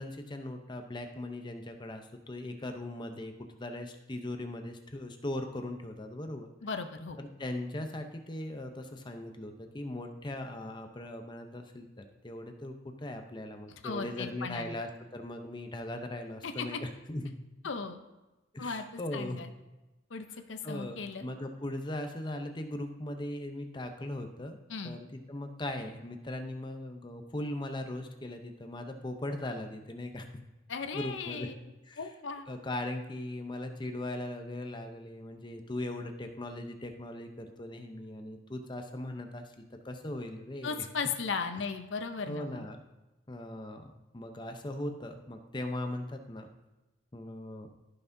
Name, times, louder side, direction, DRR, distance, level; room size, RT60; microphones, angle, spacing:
voice 1, 0.0-6.5 7.2-17.3 18.5-19.4 20.6-24.6 24.8-30.4 30.9-31.5 31.9-32.1 32.5-40.8 42.3-42.8 43.3-46.5 47.1-47.7, left 1 dB, 25° left, 5 dB, 0.7 m, -39 dB
voice 2, 6.6-7.2 13.8-14.8 16.4-16.8 17.6-18.0 18.6-19.5 20.1-21.3 24.7-25.0 30.7-31.5 32.0-32.5 40.6-42.7, left 5 dB, 75° left, 7 dB, 0.6 m, -37 dB
14.5 x 5.7 x 2.7 m, 1.1 s
head